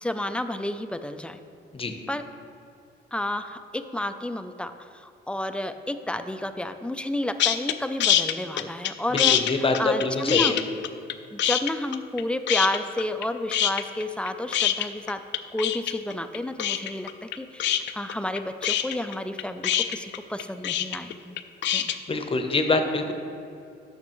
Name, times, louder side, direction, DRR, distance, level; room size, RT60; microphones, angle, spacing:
voice 1, 0.0-1.4 2.1-2.2 3.1-10.6 11.3-15.2 15.5-17.7 17.9-21.4 21.7-21.9, left 1 dB, 5° left, 9 dB, 0.4 m, -31 dB
sound 1, 7.4-7.7 8.0-8.9 9.2-11.1 11.4-12.2 12.5-13.2 13.5-22.0, left 11 dB, 65° left, 0.4 m, -24 dB
voice 2, 9.1-10.6 22.1-23.1, left 3 dB, 30° left, 6 dB, 0.8 m, -25 dB
12.0 x 5.8 x 3.0 m, 2.6 s
cardioid pair, 90°, 20 cm